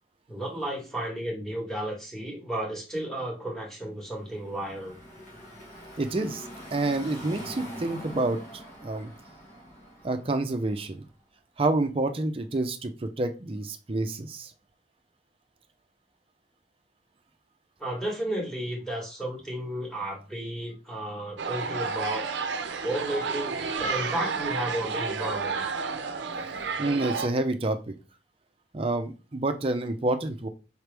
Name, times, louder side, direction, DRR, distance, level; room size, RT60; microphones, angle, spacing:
voice 1, 0.3-5.0 17.8-22.2 22.8-25.7, right 1 dB, 5° left, -2 dB, 1.6 m, -33 dB
Car passing by / Traffic noise roadway noise, 4.1-11.1, equal, 45° left, 1.5 m, -44 dB
voice 2, 6.0-6.5 6.7-8.4 8.8-9.1 10.0-11.0 11.6-14.5 26.5-27.9 28.7-30.5, right 2 dB, 30° right, 6 dB, 0.6 m, -28 dB
sound 1, 21.4-27.3, right 5 dB, 85° right, 0.6 m, -31 dB
5.0 x 3.1 x 3.4 m, 0.32 s
head